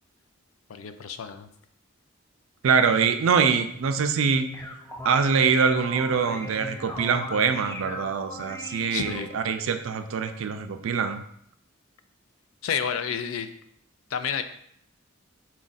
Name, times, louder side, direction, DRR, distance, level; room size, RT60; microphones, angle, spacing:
voice 1, 0.7-1.5 8.9-9.4 12.6-13.5 14.1-14.4, left 7 dB, 80° left, 9 dB, 0.4 m, -30 dB
voice 2, 2.6-4.5 5.0-11.2, right 5 dB, 75° right, 8 dB, 0.4 m, -24 dB
sound 1, 4.3-9.5, left 1 dB, 10° left, 0.4 m, -38 dB
4.4 x 2.4 x 3.9 m, 0.68 s
head